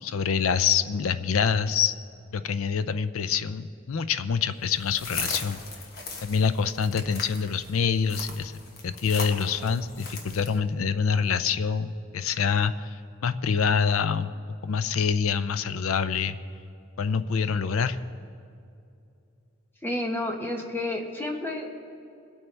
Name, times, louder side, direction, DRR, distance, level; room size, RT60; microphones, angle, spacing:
voice 1, 0.0-1.9 2.3-5.6 6.2-8.5 8.8-14.3 14.6-16.4 17.0-18.0, left 6 dB, 85° left, 12 dB, 0.5 m, -26 dB
sound 1, 4.7-10.6, left 4 dB, 45° left, 1.3 m, -38 dB
voice 2, 19.8-21.7, left 1 dB, 10° left, 1 dB, 1.1 m, -30 dB
21.0 x 8.7 x 3.3 m, 2.6 s
head